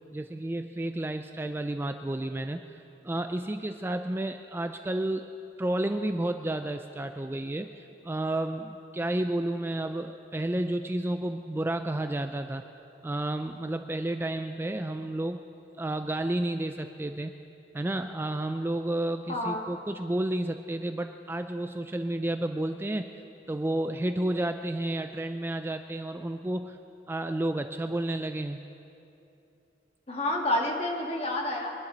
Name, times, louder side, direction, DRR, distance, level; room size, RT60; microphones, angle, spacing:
voice 1, 0.1-5.3 5.6-12.6 13.0-15.4 15.8-17.3 17.7-23.1 23.5-26.8 27.1-28.6, right 1 dB, 15° right, 7 dB, 0.3 m, -31 dB
voice 2, 19.3-19.6 30.1-31.7, left 1 dB, 35° left, 0 dB, 1.8 m, -29 dB
23.0 x 11.5 x 4.0 m, 2.8 s
head